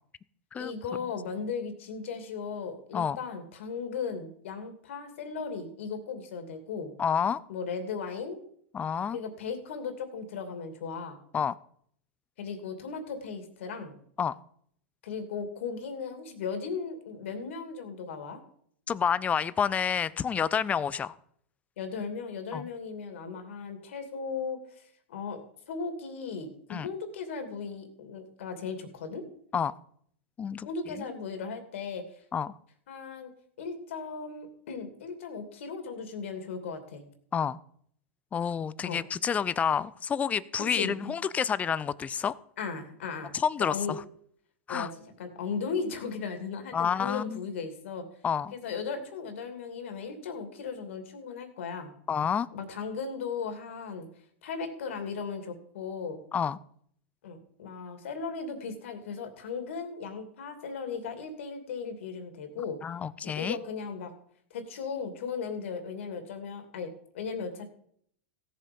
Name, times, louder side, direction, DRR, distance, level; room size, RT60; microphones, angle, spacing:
voice 1, 0.6-6.9 7.5-8.4 9.1-11.2 12.4-14.0 15.0-18.4 21.8-25.4 25.7-29.2 30.6-32.2 32.9-33.3 33.6-37.0 38.8-39.0 40.7-41.1 42.6-43.3 43.7-44.0 44.7-44.9 45.2-48.0 48.5-51.9 52.5-54.1 54.4-56.2 57.2-62.8 63.2-64.1 64.5-67.7, left 5 dB, 75° left, 7 dB, 2.7 m, -37 dB
voice 2, 7.0-7.4 8.7-9.2 11.3-11.5 14.2-14.4 18.9-21.1 22.5-22.7 26.7-26.9 29.5-29.7 30.4-30.7 31.0-31.1 32.3-32.6 37.3-37.6 38.3-42.4 43.3-44.0 44.7-44.9 46.7-47.4 48.2-48.5 52.1-52.5 56.3-56.6 62.8-63.6, left 7 dB, 20° left, 19 dB, 0.5 m, -29 dB
16.5 x 7.4 x 5.4 m, 0.64 s
hypercardioid pair, 120°, 7 cm